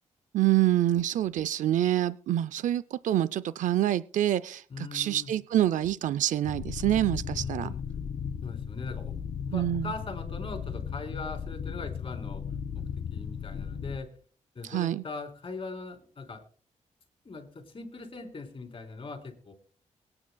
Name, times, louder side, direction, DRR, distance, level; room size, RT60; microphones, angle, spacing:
voice 1, 0.3-7.7 9.5-9.9 14.6-15.0, right 12 dB, 80° right, 0.4 m, -26 dB
voice 2, 4.7-5.3 7.3-7.8 8.4-9.2 9.5-12.4 13.1-14.1 14.6-16.4 17.3-19.5, left 3 dB, 45° left, 3.6 m, -40 dB
sound 1, 6.4-14.0, left 7 dB, 70° left, 1.3 m, -36 dB
23.5 x 9.8 x 2.3 m
cardioid pair, 100°, 13 cm